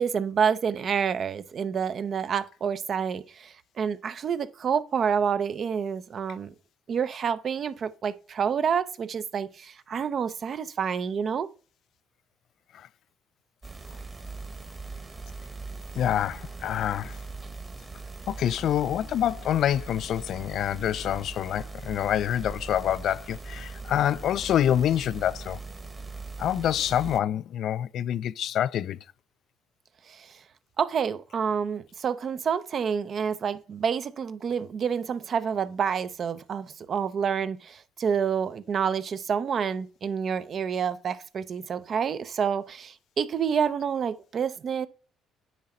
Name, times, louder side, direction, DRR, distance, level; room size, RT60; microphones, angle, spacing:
voice 1, 0.0-6.5 6.9-11.5 30.1-30.3 30.8-44.9, right 7 dB, 50° right, 0.7 m, -28 dB
sound 1, 13.6-27.2, right 3 dB, 25° right, 1.3 m, -40 dB
voice 2, 16.0-17.2 18.3-25.6 26.4-29.0, left 10 dB, 65° left, 0.3 m, -26 dB
9.4 x 3.8 x 4.3 m
cardioid pair, 85°, 0 cm